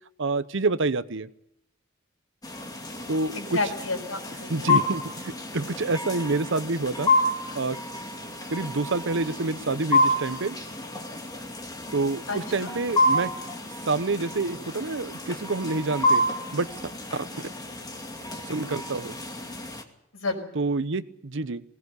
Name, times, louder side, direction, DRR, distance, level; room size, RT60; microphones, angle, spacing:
voice 1, 0.2-1.3 3.1-3.6 4.5-7.1 7.6-7.8 8.5-10.6 11.9-13.3 13.8-16.2 16.5-17.4 18.5-19.2 20.5-21.6, right 3 dB, 65° right, 14 dB, 0.9 m, -27 dB
sound 1, 2.4-19.8, left 1 dB, 20° left, 2.4 m, -29 dB
voice 2, 3.3-4.8 12.3-12.8 20.1-20.5, left 3 dB, 85° left, 1 dB, 5.7 m, -31 dB
20.5 x 18.5 x 8.2 m, 0.78 s
head